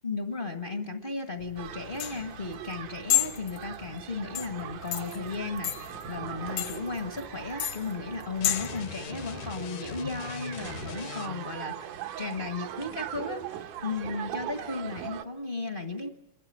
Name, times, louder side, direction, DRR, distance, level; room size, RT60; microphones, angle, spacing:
voice 1, 0.0-16.1, left 3 dB, 45° left, 5 dB, 0.6 m, -35 dB
sound 1, 1.4-8.8, left 12 dB, 65° left, 1.3 m, -32 dB
sound 2, 1.6-15.2, right 10 dB, 80° right, 2.5 m, -41 dB
sound 3, 8.4-11.6, left 9 dB, 85° left, 2.5 m, -41 dB
28.0 x 13.0 x 9.3 m, 0.91 s
omnidirectional pair, 3.5 m